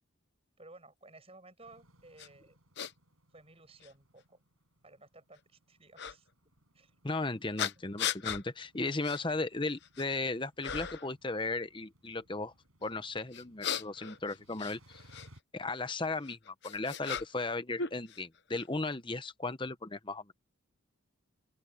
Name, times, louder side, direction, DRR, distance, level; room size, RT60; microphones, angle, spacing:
voice 1, 0.6-2.6 3.3-4.4 4.8-6.3 6.7-6.9, right 2 dB, 25° right, 7.2 m, -56 dB
sound 1, 1.6-15.4, right 1 dB, 85° right, 7.7 m, -65 dB
sound 2, 2.2-2.3 2.8-2.9 3.8-3.9 6.0-6.1 7.6-8.4 9.0-9.2 9.7-10.2 10.6-11.1 13.3-15.3 16.2-17.5 17.8-18.6, left 7 dB, 55° left, 0.9 m, -37 dB
voice 2, 7.0-12.5 12.8-15.0 15.5-20.3, left 3 dB, 20° left, 0.9 m, -36 dB
open air
head